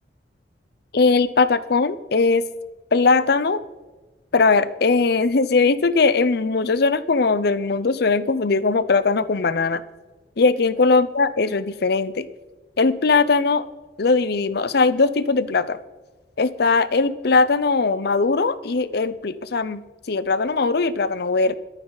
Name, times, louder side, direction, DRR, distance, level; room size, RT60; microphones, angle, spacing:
voice 1, 0.9-2.4 2.9-3.6 4.3-9.8 10.4-12.3 12.8-13.6 14.0-15.8 16.4-21.5, left 4 dB, 65° left, 15 dB, 0.7 m, -20 dB
22.0 x 9.1 x 4.0 m, 1.2 s
head